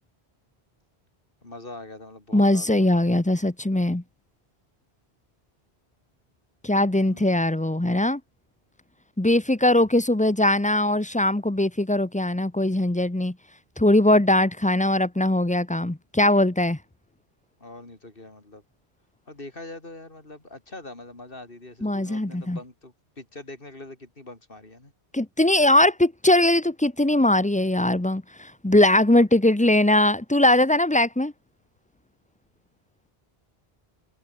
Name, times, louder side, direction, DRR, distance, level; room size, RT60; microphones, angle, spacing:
voice 1, 1.4-3.4 7.0-7.5 17.6-18.6 19.3-24.9, left 2 dB, 60° left, 4.5 m, -43 dB
voice 2, 2.3-4.0 6.6-8.2 9.2-13.3 13.8-16.8 21.8-22.6 25.1-31.3, left 1 dB, 10° left, 0.8 m, -21 dB
omnidirectional pair, 1.1 m